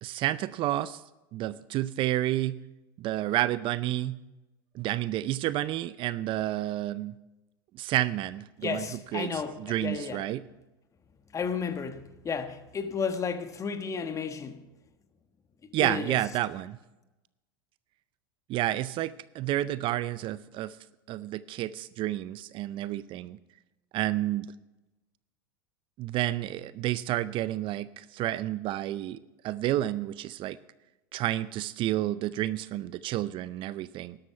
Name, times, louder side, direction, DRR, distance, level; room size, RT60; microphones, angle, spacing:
voice 1, 0.0-1.0 1.3-2.6 3.0-4.2 4.7-7.2 7.7-8.9 9.1-10.4 15.7-16.8 18.5-20.8 21.1-23.4 23.9-24.5 26.0-30.6 31.1-34.2, right 14 dB, 45° right, 0.5 m, -30 dB
voice 2, 8.6-10.2 11.3-14.6 15.8-16.2, left 6 dB, 25° left, 1.3 m, -33 dB
12.5 x 12.0 x 5.6 m
hypercardioid pair, 95°, 12 cm